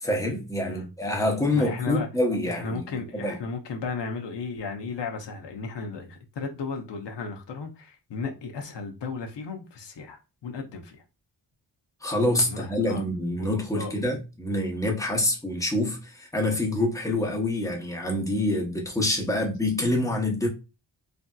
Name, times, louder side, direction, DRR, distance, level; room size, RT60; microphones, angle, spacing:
voice 1, 0.0-3.4 12.0-20.5, left 1 dB, 5° left, 0.8 m, -26 dB
voice 2, 1.5-2.1 2.5-11.0 12.4-13.0 13.4-13.9, left 4 dB, 70° left, 0.7 m, -35 dB
3.3 x 2.7 x 2.3 m
wide cardioid pair, 125°, 45 cm